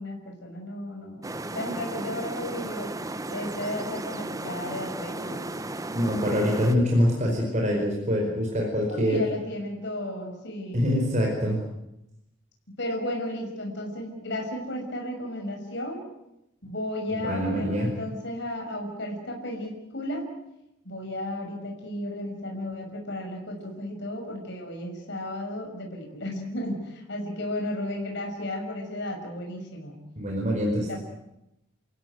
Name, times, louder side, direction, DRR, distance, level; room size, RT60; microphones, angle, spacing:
voice 1, 0.0-2.9 3.3-5.5 8.9-10.8 12.8-16.0 16.6-20.3 20.8-30.0 30.9-31.0, left 1 dB, 60° left, 1 dB, 6.3 m, -34 dB
sound 1, 1.2-6.8, right 2 dB, 15° right, 0.9 m, -35 dB
voice 2, 5.9-9.3 10.7-11.6 17.1-17.9 30.2-31.0, equal, 40° right, 0 dB, 4.9 m, -25 dB
30.0 x 16.0 x 9.5 m, 0.86 s
head